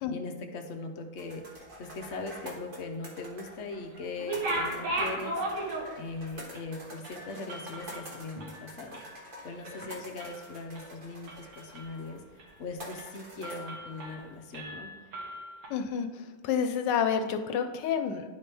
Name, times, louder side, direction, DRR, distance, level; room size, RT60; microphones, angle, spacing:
voice 1, 0.1-12.2 12.6-14.9, left 3 dB, 55° left, 4 dB, 0.8 m, -40 dB
sound 1, 1.2-14.4, equal, 35° right, 1.2 m, -47 dB
sound 2, 4.2-6.2 6.5-6.7 7.0-9.2 9.5-9.8 10.2-10.8 11.3-12.0 12.4-12.5 12.9-13.1 13.4-14.2 14.5-15.7, right 1 dB, 90° right, 1.9 m, -36 dB
voice 2, 15.7-18.2, left 7 dB, 85° left, 7 dB, 1.3 m, -29 dB
10.5 x 4.3 x 3.4 m, 1.3 s
omnidirectional pair, 1.8 m